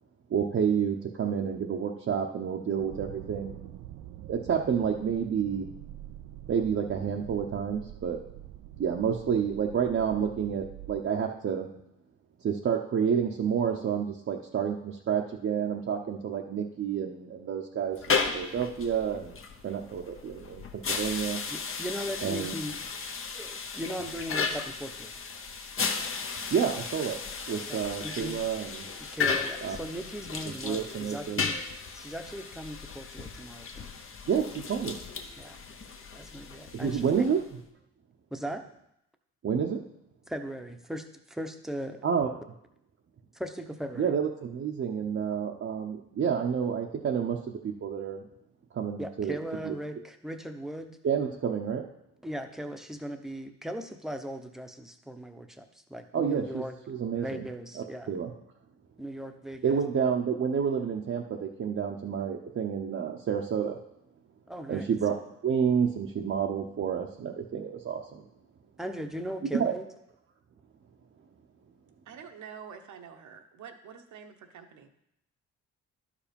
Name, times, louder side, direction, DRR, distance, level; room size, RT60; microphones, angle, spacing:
voice 1, 0.3-3.6 4.3-5.7 6.5-8.2 8.8-11.7 12.4-19.4 19.6-21.4 22.2-22.5 26.5-27.2 27.5-28.8 29.6-29.8 30.6-31.4 34.3-35.0 36.7-37.4 39.4-39.8 42.0-42.3 44.0-48.3 48.7-49.4 49.6-49.7 51.0-51.9 56.1-57.4 57.8-58.3 59.6-63.8 64.7-68.2 69.5-69.7, right 7 dB, 45° right, 0 dB, 0.8 m, -29 dB
sound 1, 2.8-11.0, right 13 dB, 90° right, 0.5 m, -45 dB
sound 2, 17.9-37.5, left 5 dB, 45° left, 1.0 m, -35 dB
voice 2, 21.5-22.8 23.3-25.1 27.7-28.4 29.0-31.5 31.9-33.9 35.4-35.6 36.1-37.3 38.3-38.6 40.3-42.0 43.3-44.1 49.0-51.0 52.2-56.7 57.1-58.1 59.0-59.8 64.5-64.9 68.8-69.8, equal, ahead, 6 dB, 0.9 m, -38 dB
voice 3, 72.1-74.9, right 7 dB, 70° right, 7 dB, 1.1 m, -47 dB
11.0 x 5.0 x 5.3 m, 0.79 s
cardioid pair, 90°, 30 cm